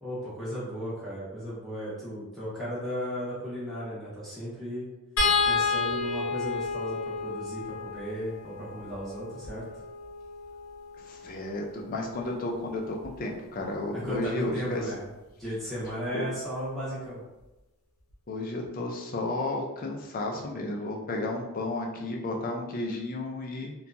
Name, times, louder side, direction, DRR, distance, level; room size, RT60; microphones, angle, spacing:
voice 1, 0.0-4.8 5.4-9.6 13.9-15.0 15.4-17.2, equal, ahead, -10 dB, 0.9 m, -35 dB
sound 1, 5.2-11.5 13.0-13.2 13.5-13.7, left 4 dB, 75° left, 0.7 m, -31 dB
voice 2, 11.0-14.8 15.8-16.2 18.3-23.7, left 2 dB, 40° left, 0 dB, 0.4 m, -33 dB
2.8 x 2.2 x 2.5 m, 1.0 s
head